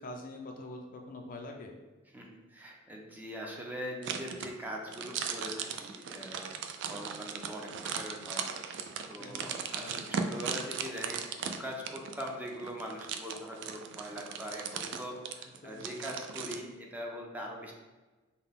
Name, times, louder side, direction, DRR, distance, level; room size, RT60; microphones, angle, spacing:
voice 1, 0.0-1.7 9.2-10.0 15.6-16.1, left 2 dB, 45° left, 2 dB, 0.5 m, -45 dB
voice 2, 2.1-6.5 6.8-17.7, equal, 10° right, -1 dB, 0.6 m, -42 dB
sound 1, 4.0-16.6, right 6 dB, 60° right, 0.4 m, -38 dB
5.5 x 2.2 x 3.6 m, 1.2 s
head